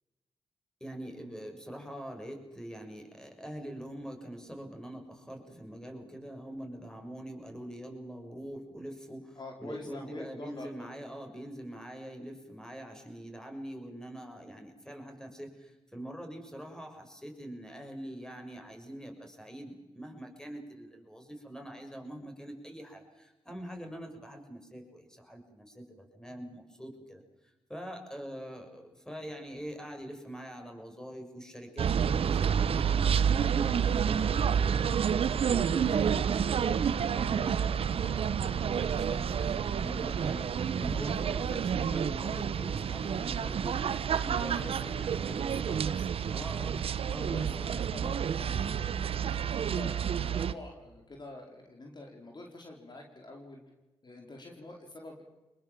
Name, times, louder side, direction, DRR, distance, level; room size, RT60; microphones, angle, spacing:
voice 1, 0.8-27.2 27.7-34.8 35.4-45.4 46.3-47.7 48.0-48.3, equal, 5° left, 3 dB, 7.0 m, -44 dB
voice 2, 9.4-10.9 44.3-46.4 47.3-48.0 48.3-53.6 54.0-55.2, left 2 dB, 45° left, 2 dB, 4.3 m, -46 dB
sound 1, 31.8-50.5, right 7 dB, 70° right, 1.0 m, -29 dB
26.0 x 21.0 x 7.6 m, 1.1 s
supercardioid pair, 45°, 10 cm